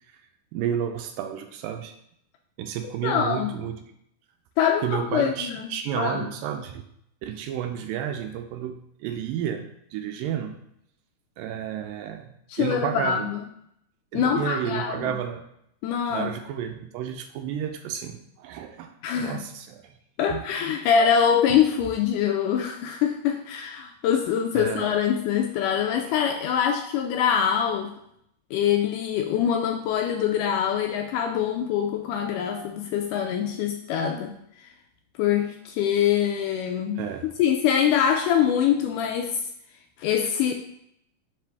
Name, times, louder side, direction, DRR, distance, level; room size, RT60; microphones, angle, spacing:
voice 1, 0.5-1.9 2.6-3.8 4.8-6.9 7.2-10.5 11.4-12.3 12.6-13.3 14.1-15.4 16.1-18.9 19.2-19.9 20.3-20.4 24.5-24.9 37.0-37.3, right 9 dB, 85° right, 6 dB, 2.2 m, -31 dB
voice 2, 3.0-3.5 4.6-6.3 12.5-13.4 14.1-15.2 15.8-16.3 19.0-19.4 20.2-27.9 28.5-34.3 34.6-34.7 35.2-37.0 37.4-39.4 40.0-40.5, left 8 dB, 80° left, 4 dB, 1.9 m, -24 dB
5.7 x 5.1 x 3.4 m, 0.73 s
omnidirectional pair, 4.0 m